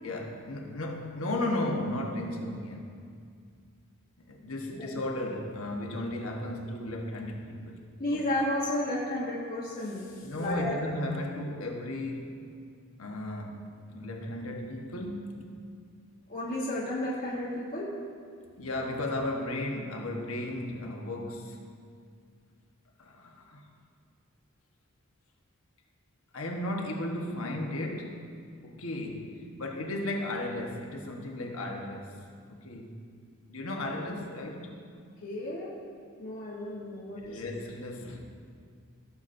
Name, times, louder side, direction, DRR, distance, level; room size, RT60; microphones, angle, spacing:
voice 1, 0.0-2.8 4.3-8.2 10.2-12.3 13.0-15.5 18.6-21.6 23.0-23.6 26.3-28.3 28.6-32.1 32.5-32.9 33.5-34.7 37.2-38.2, left 1 dB, 70° left, 1 dB, 1.2 m, -35 dB
voice 2, 4.7-5.0 8.0-10.8 16.3-17.9 35.2-35.7 36.2-37.5, left 1 dB, 45° left, -6 dB, 1.2 m, -33 dB
16.5 x 7.1 x 2.6 m, 2.2 s
head